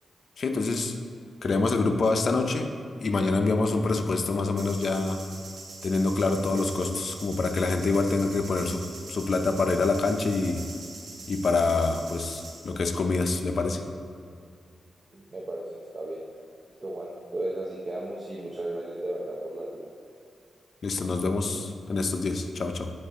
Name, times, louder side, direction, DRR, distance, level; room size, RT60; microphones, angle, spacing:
voice 1, 0.4-0.9 1.4-2.7 3.0-5.2 5.8-10.6 11.3-13.8 20.8-22.9, left 3 dB, 55° left, 5 dB, 0.6 m, -26 dB
sound 1, 4.6-12.7, right 3 dB, 85° right, 1.5 m, -43 dB
voice 2, 15.1-16.2 16.8-19.9, right 1 dB, 35° right, -4 dB, 0.8 m, -35 dB
8.5 x 5.1 x 3.7 m, 2.3 s
cardioid pair, 85°, 0 cm